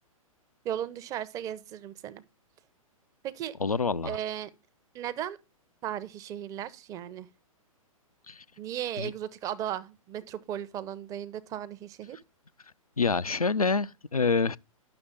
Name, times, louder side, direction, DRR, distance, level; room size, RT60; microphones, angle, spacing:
voice 1, 0.6-2.2 3.2-3.5 4.0-4.5 4.9-5.4 5.8-7.3 8.6-12.2, right 10 dB, 20° right, 0.7 m, -36 dB
voice 2, 3.6-4.2 8.3-8.4 9.0-9.1 13.0-14.6, left 4 dB, 85° left, 0.5 m, -27 dB
10.5 x 6.3 x 3.6 m
figure-of-eight pair, 115°, 18 cm